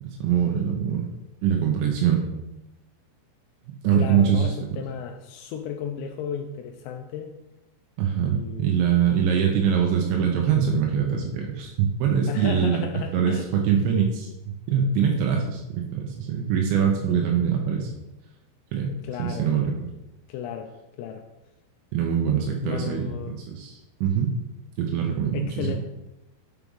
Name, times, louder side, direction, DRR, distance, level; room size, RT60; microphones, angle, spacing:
voice 1, 0.0-1.1 1.4-2.3 3.8-4.5 8.0-12.8 13.1-14.3 14.7-17.9 18.7-18.9 19.2-19.9 21.9-24.3 24.8-25.8, right 8 dB, 85° right, 1 dB, 3.1 m, -23 dB
voice 2, 3.9-7.3 8.2-8.7 12.3-13.5 19.0-19.5 20.3-20.7 21.0-21.2 22.6-23.4 25.3-25.8, left 8 dB, 85° left, 3 dB, 2.7 m, -34 dB
7.6 x 4.8 x 5.4 m, 0.94 s
omnidirectional pair, 5.1 m